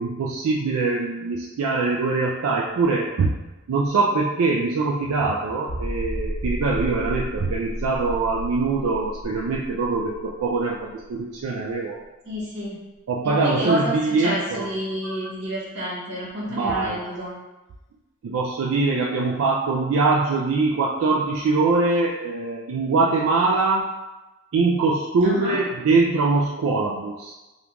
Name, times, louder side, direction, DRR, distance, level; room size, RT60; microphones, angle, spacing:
voice 1, 0.0-3.4 3.7-12.0 13.1-14.7 15.0-15.2 16.5-17.0 18.2-23.9 24.5-27.3, right 3 dB, 80° right, -2 dB, 0.3 m, -23 dB
sound 1, 5.7-11.1 11.4-11.5 12.0-12.1, equal, 60° left, 0.9 m, -32 dB
voice 2, 12.2-12.8 13.2-17.3 25.2-25.6, equal, 55° right, -6 dB, 1.1 m, -29 dB
3.5 x 2.4 x 2.9 m, 1.1 s
head